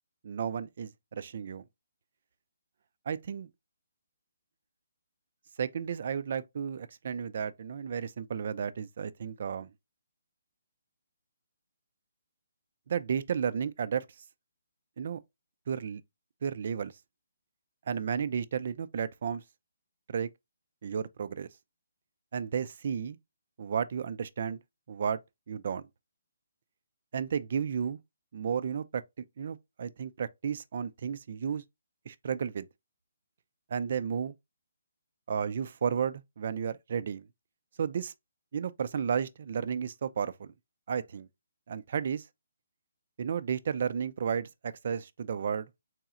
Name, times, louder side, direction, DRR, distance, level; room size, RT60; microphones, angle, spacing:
voice 1, 0.2-1.6 3.1-3.5 5.6-9.7 12.9-14.1 15.0-15.2 15.7-16.0 16.4-16.9 17.9-19.4 20.1-20.3 20.8-21.5 22.3-23.2 23.6-24.6 24.9-25.2 25.5-25.8 27.1-28.0 28.3-29.0 29.4-31.6 32.1-32.7 33.7-34.3 35.3-37.3 37.8-38.1 38.5-40.5 40.9-41.3 41.7-42.3 43.2-45.7, right 7 dB, 55° right, 0.3 m, -33 dB
3.9 x 2.9 x 2.4 m
hypercardioid pair, 155°, 0 cm